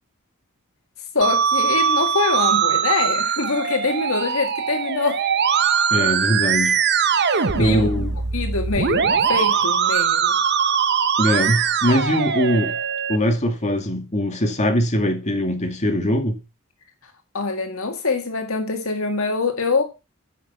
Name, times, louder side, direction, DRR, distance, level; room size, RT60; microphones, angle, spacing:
voice 1, 1.1-5.2 7.3-7.9 8.3-10.3 17.3-19.8, left 3 dB, 75° left, 1.8 m, -24 dB
Musical instrument, 1.2-13.2, right 7 dB, 55° right, 1.0 m, -21 dB
voice 2, 5.9-6.8 7.6-8.2 11.2-12.8 13.1-16.4, equal, 35° left, 2.3 m, -21 dB
10.0 x 6.3 x 6.1 m
head